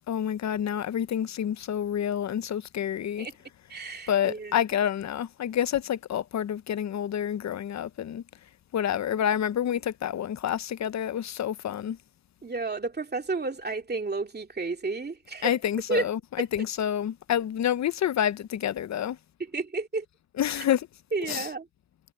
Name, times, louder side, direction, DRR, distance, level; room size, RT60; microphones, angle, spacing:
voice 1, 0.1-3.3 4.1-8.2 8.7-12.0 15.4-19.2 20.4-20.9 21.2-21.5, left 10 dB, 40° left, 0.6 m, -28 dB
voice 2, 3.7-4.6 9.1-9.2 12.4-15.5 15.9-16.0 19.5-20.0 21.1-21.7, right 3 dB, 20° right, 2.6 m, -31 dB
cardioid pair, 130°, 45 cm